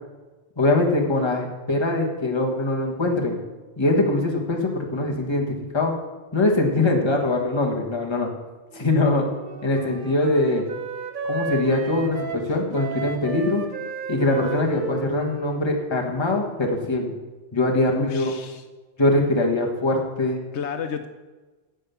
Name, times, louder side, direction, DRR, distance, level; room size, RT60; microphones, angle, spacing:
voice 1, 0.6-3.4 3.8-5.9 6.3-8.3 8.7-9.3 9.6-10.7 11.3-13.6 14.1-17.1 17.5-18.3 19.0-20.4, left 2 dB, 25° left, 0 dB, 1.5 m, -22 dB
Wind instrument woodwind instrument, 8.7-16.7, right 4 dB, 50° right, 1.2 m, -34 dB
voice 2, 17.9-18.6 20.5-21.1, left 7 dB, 85° left, 8 dB, 1.0 m, -31 dB
9.8 x 8.2 x 7.1 m, 1.2 s
omnidirectional pair, 1.1 m